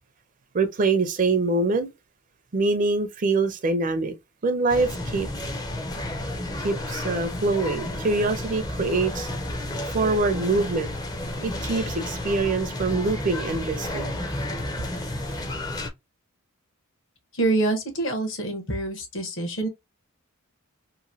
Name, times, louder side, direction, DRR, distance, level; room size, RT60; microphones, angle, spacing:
voice 1, 0.5-1.9 2.5-4.1 4.4-5.3 6.6-9.3 9.9-10.9 11.4-14.1, right 3 dB, 35° right, 0.4 m, -24 dB
sound 1, 4.7-15.9, left 1 dB, 15° left, 0.5 m, -31 dB
voice 2, 17.3-19.7, right 2 dB, 55° left, 1.0 m, -26 dB
3.0 x 2.6 x 2.6 m
head